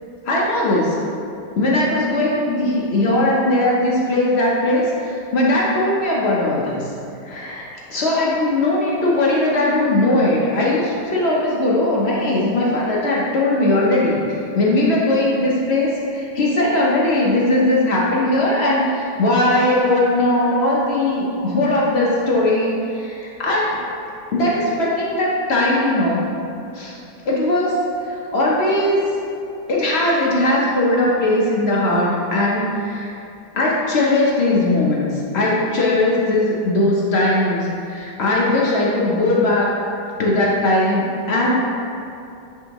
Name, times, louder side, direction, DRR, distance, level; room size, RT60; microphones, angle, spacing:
voice 1, 0.2-0.9 1.6-6.9 7.2-23.7 24.3-26.3 26.7-26.9 27.2-27.8 28.0-29.0 29.7-33.1 33.5-39.7 40.2-41.6, left 1 dB, 60° left, -4 dB, 0.7 m, -19 dB
9.2 x 3.6 x 3.0 m, 2.6 s
omnidirectional pair, 2.0 m